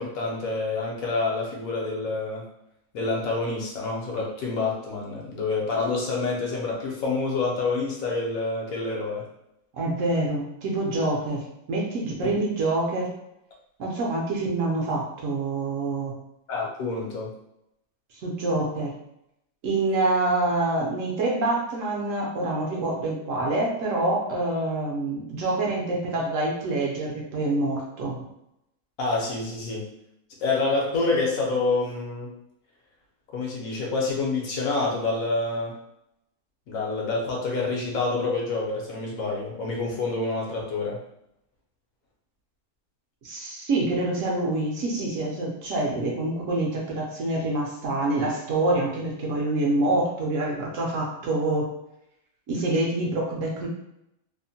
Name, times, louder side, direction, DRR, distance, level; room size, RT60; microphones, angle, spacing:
voice 1, 0.0-2.4 2.9-9.2 12.2-12.3 16.5-17.3 29.0-29.9 30.4-32.3 33.3-35.7 36.7-41.0, left 3 dB, 70° left, -2 dB, 1.1 m, -27 dB
voice 2, 9.8-13.1 13.8-16.1 18.2-18.9 19.6-28.2 43.2-51.7 52.5-53.7, right 2 dB, 65° right, -2 dB, 0.9 m, -26 dB
2.8 x 2.1 x 2.7 m, 0.81 s
omnidirectional pair, 1.6 m